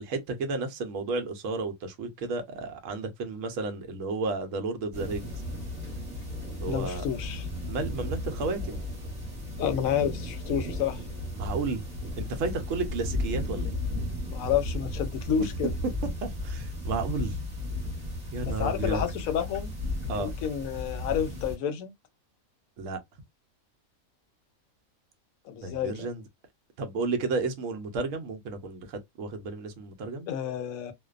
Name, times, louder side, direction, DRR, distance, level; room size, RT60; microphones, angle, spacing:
voice 1, 0.0-5.3 6.6-7.0 7.7-8.8 11.4-11.8 12.2-13.7 15.3-15.5 16.2-17.3 18.3-19.0 20.1-20.3 22.8-23.0 25.6-26.2 26.8-30.3, right 3 dB, 65° right, 1.0 m, -32 dB
sound 1, 4.9-21.6, left 2 dB, 30° right, 1.1 m, -34 dB
voice 2, 6.7-7.5 9.6-11.0 14.3-15.7 18.4-19.7 20.1-21.9 25.5-26.1 30.3-30.9, left 8 dB, 75° left, 1.0 m, -30 dB
2.5 x 2.1 x 2.3 m
omnidirectional pair, 1.5 m